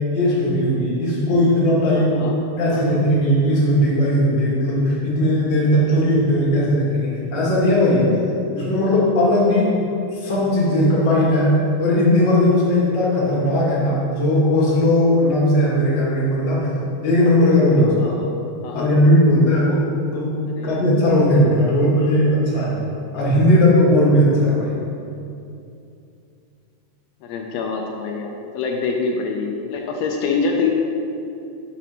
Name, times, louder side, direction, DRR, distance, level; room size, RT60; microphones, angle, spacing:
voice 1, 0.0-2.3 2.6-8.1 8.5-9.8 10.1-16.7 17.0-18.1 18.7-19.8 20.1-22.8 23.1-24.8, left 1 dB, 50° left, -5 dB, 1.5 m, -18 dB
voice 2, 1.9-2.3 2.7-2.8 18.0-18.3 18.6-18.9 20.5-20.8 27.2-30.7, left 4 dB, 90° left, 1 dB, 1.4 m, -25 dB
5.2 x 4.2 x 5.8 m, 2.6 s
omnidirectional pair, 3.5 m